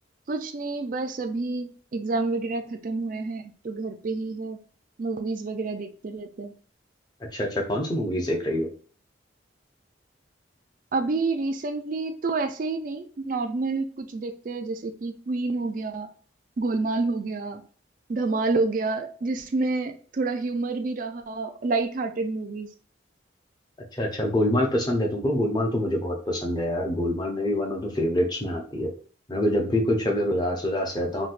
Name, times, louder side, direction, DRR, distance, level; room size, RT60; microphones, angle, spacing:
voice 1, 0.3-4.6 5.0-6.5 10.9-16.1 16.6-17.6 18.1-22.7, right 3 dB, 45° right, 7 dB, 0.4 m, -28 dB
voice 2, 7.3-8.7 23.9-28.9 29.3-31.3, left 1 dB, 20° left, 0 dB, 0.6 m, -25 dB
4.0 x 2.2 x 2.5 m, 0.43 s
head